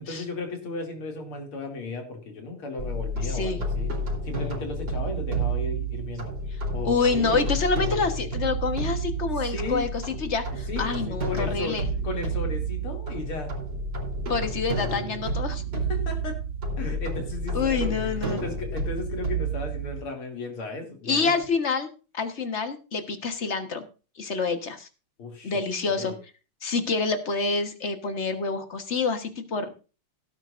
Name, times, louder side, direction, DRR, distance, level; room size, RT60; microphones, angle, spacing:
voice 1, 0.1-3.9 4.2-6.3 6.7-7.5 9.4-9.9 10.7-13.5 15.7-16.4 16.8-21.3 25.2-26.2, left 3 dB, 75° left, 3 dB, 3.6 m, -35 dB
sound 1, 2.8-20.0, right 2 dB, 55° right, 4.6 m, -30 dB
voice 2, 3.2-3.6 6.8-11.9 14.3-15.6 17.5-18.4 21.0-23.8 24.2-24.9 25.4-26.1 26.6-29.7, left 4 dB, 35° left, 8 dB, 1.4 m, -27 dB
17.5 x 9.5 x 2.6 m, 0.33 s
omnidirectional pair, 2.4 m